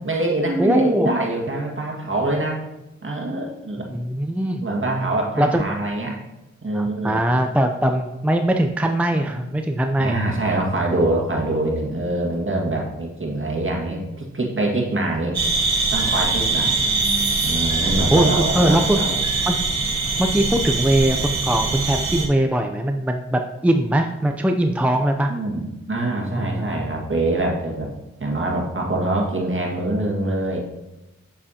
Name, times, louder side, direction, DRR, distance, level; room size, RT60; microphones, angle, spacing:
voice 1, 0.0-2.6 3.0-3.9 4.6-6.2 6.6-7.2 10.0-15.4 15.9-16.7 17.4-19.2 25.3-27.9 28.2-30.6, right 2 dB, 45° right, -1 dB, 1.9 m, -24 dB
voice 2, 0.6-1.1 3.9-4.7 5.4-5.8 6.7-10.2 16.9-17.4 18.1-19.0 19.5-19.7 20.2-25.3 26.4-26.7, right 1 dB, 5° right, 4 dB, 0.5 m, -21 dB
sound 1, 15.3-22.3, right 3 dB, 65° right, 1.5 m, -22 dB
7.5 x 7.0 x 2.8 m, 0.99 s
cardioid pair, 50°, 29 cm